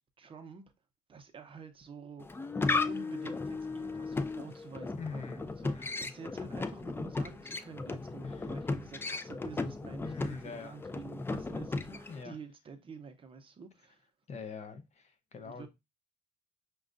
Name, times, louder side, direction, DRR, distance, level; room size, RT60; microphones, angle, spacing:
voice 1, 0.2-0.6 1.1-2.3 2.9-14.0 15.4-15.7, right 5 dB, 30° right, 0.6 m, -48 dB
sound 1, 2.2-12.2, left 3 dB, 15° left, 0.3 m, -36 dB
voice 2, 5.0-6.1 8.2-8.4 10.0-10.8 11.9-12.3 14.3-15.7, left 4 dB, 40° left, 0.8 m, -43 dB
6.2 x 2.3 x 2.5 m
cardioid pair, 110°, 17 cm